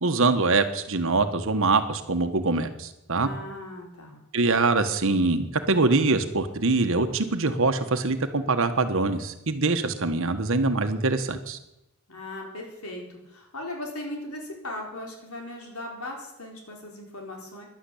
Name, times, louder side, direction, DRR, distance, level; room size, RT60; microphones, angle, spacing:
voice 1, 0.0-3.3 4.3-11.6, right 3 dB, 65° right, 8 dB, 1.4 m, -24 dB
voice 2, 3.2-4.2 12.1-17.6, left 1 dB, 80° left, 0 dB, 4.6 m, -38 dB
12.0 x 11.5 x 8.6 m, 0.88 s
head